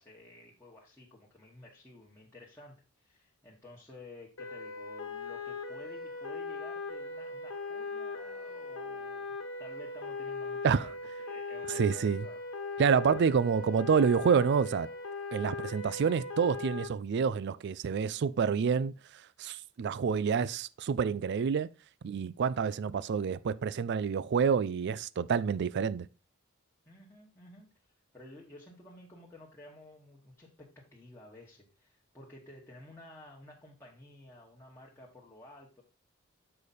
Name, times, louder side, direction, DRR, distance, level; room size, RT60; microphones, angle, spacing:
voice 1, 0.0-10.9 11.2-12.4 26.8-27.7 28.1-35.8, left 1 dB, 10° left, 1.2 m, -53 dB
sound 1, 4.4-16.9, left 3 dB, 80° left, 1.4 m, -39 dB
voice 2, 11.8-12.2 12.8-14.9 15.3-18.9 19.4-21.7 22.0-26.1, right 6 dB, 55° right, 0.4 m, -28 dB
6.8 x 4.9 x 4.1 m
head